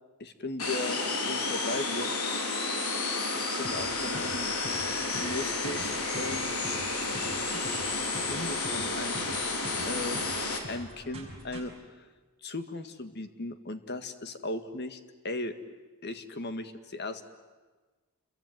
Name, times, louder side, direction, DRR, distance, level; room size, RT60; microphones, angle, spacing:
voice 1, 0.2-2.1 3.3-4.5 5.1-6.6 8.2-9.5 9.9-10.2 10.7-11.7 12.0-12.1 12.4-15.5 16.0-17.2, left 2 dB, 50° left, 9 dB, 1.8 m, -37 dB
sound 1, 0.6-10.6, left 3 dB, 75° left, 3.9 m, -31 dB
sound 2, 3.6-11.6, right 1 dB, 25° right, 7.1 m, -45 dB
28.0 x 23.0 x 9.2 m, 1.3 s
head